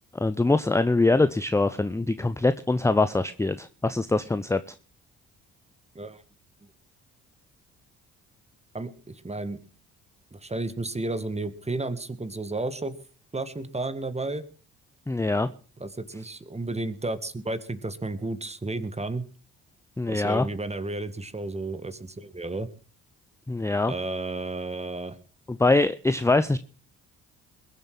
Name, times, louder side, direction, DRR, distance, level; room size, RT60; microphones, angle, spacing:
voice 1, 0.1-4.6 15.1-15.5 20.0-20.5 23.5-23.9 25.5-26.6, left 2 dB, 10° left, 13 dB, 0.7 m, -23 dB
voice 2, 8.7-9.6 10.3-13.0 13.3-14.4 15.8-19.2 20.1-22.7 23.9-25.2, right 2 dB, 15° right, 13 dB, 1.7 m, -32 dB
21.5 x 7.5 x 6.0 m, 0.40 s
hypercardioid pair, 50°, 37 cm